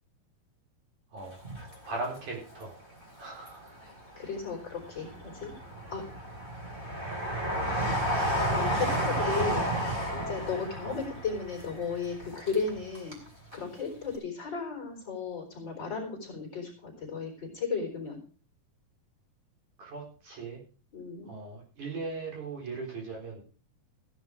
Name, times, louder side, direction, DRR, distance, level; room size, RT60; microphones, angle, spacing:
Train, 1.3-2.6 3.0-4.0 4.5-13.3 13.5-13.6, right 1 dB, 15° right, 4.2 m, -32 dB
voice 1, 1.9-2.8 3.2-3.6 9.6-9.8 10.8-11.0 19.8-20.6 21.2-23.4, right 3 dB, 55° right, -1 dB, 5.6 m, -38 dB
voice 2, 3.8-5.5 5.9-6.1 7.8-8.0 8.4-9.7 10.1-13.2 13.5-18.2 20.9-21.3, left 5 dB, 30° left, 2 dB, 4.3 m, -35 dB
16.0 x 10.5 x 4.8 m, 0.38 s
omnidirectional pair, 4.3 m